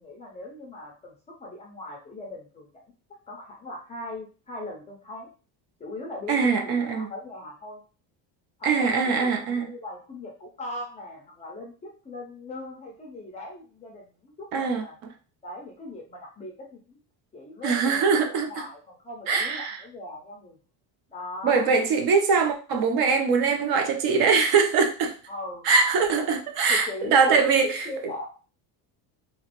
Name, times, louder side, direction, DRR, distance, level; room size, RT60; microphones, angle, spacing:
voice 1, 0.0-2.7 3.3-5.3 5.8-7.8 8.6-15.0 15.4-17.0 17.3-20.6 21.1-21.7 25.3-25.7 26.7-28.2, left 2 dB, 15° left, 0.4 m, -39 dB
voice 2, 6.3-7.1 8.6-9.7 14.5-14.8 17.6-18.6 19.3-19.8 21.4-25.2 25.6-27.9, right 5 dB, 55° right, 0.7 m, -22 dB
3.1 x 2.9 x 2.9 m
cardioid pair, 170°, 44 cm